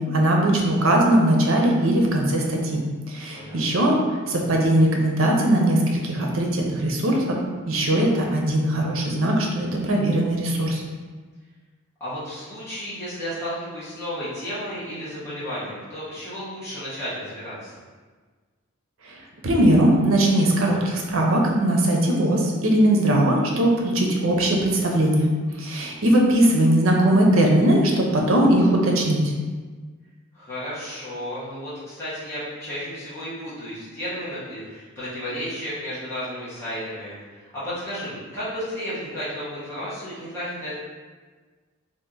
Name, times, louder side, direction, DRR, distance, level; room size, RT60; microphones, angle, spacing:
voice 1, 0.0-4.0 4.3-7.4 7.7-10.8 19.4-25.3 25.6-29.3, right 1 dB, 70° right, 0 dB, 0.6 m, -20 dB
voice 2, 3.3-3.8 12.0-17.8 26.3-26.5 30.3-40.7, equal, 15° left, -13 dB, 1.0 m, -33 dB
2.9 x 2.5 x 3.7 m, 1.4 s
head